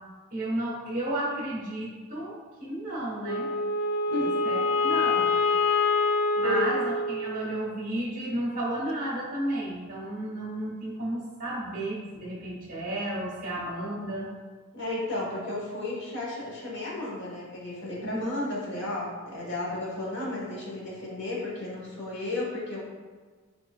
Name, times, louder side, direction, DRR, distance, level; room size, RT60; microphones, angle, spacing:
voice 1, 0.3-2.3 2.6-3.5 4.1-5.3 6.3-14.3 18.0-18.4, right 1 dB, 40° right, -5 dB, 1.4 m, -32 dB
Wind instrument woodwind instrument, 3.2-7.7, left 3 dB, 75° left, 0.4 m, -26 dB
voice 2, 14.7-22.8, left 2 dB, 55° left, -5 dB, 1.2 m, -33 dB
6.0 x 3.8 x 2.3 m, 1.4 s
head